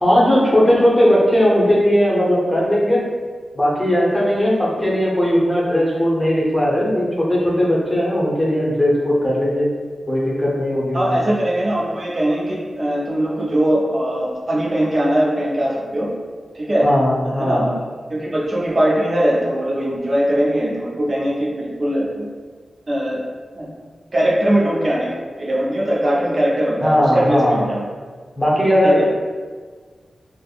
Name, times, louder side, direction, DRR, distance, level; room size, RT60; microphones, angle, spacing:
voice 1, 0.0-3.0 3.5-9.7 10.1-11.2 16.8-17.6 26.8-27.6 28.4-29.0, equal, 10° left, -6 dB, 0.7 m, -17 dB
voice 2, 10.9-16.1 16.5-16.9 17.2-17.7 18.1-22.3 22.9-23.2 23.5-23.7 24.1-27.8 28.8-29.1, right 1 dB, 40° right, -4 dB, 0.4 m, -20 dB
3.3 x 2.0 x 2.3 m, 1.5 s
wide cardioid pair, 80°, 0 cm